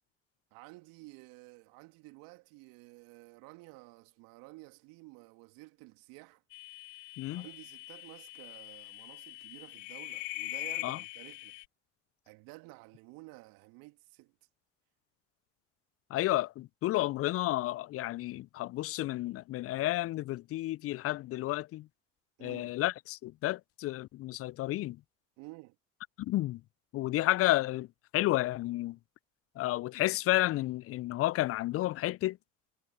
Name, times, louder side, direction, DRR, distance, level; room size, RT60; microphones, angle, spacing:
voice 1, 0.5-6.4 7.3-11.5 12.3-14.3 22.4-22.8 25.4-25.8, right 25 dB, 60° right, 2.7 m, -52 dB
sound 1, 6.5-11.7, left 27 dB, 70° left, 1.7 m, -42 dB
voice 2, 16.1-21.9 22.4-25.0 26.2-26.6 26.9-27.9 28.1-29.0 29.6-32.4, left 16 dB, 35° left, 0.5 m, -31 dB
hypercardioid pair, 70°, 38 cm